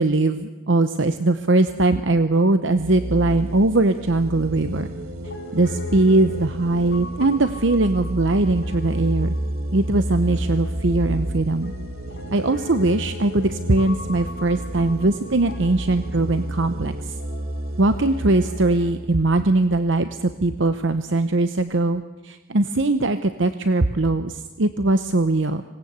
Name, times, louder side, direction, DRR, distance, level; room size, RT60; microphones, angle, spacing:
voice 1, 0.0-4.9 5.5-9.3 9.7-11.7 12.3-16.9 17.8-25.6, right 2 dB, 60° right, 10 dB, 0.9 m, -20 dB
sound 1, 2.7-20.2, right 1 dB, 80° right, 2.1 m, -31 dB
Piano, 5.2-18.9, left 3 dB, 50° left, 3.5 m, -42 dB
26.0 x 19.0 x 8.1 m, 1.2 s
head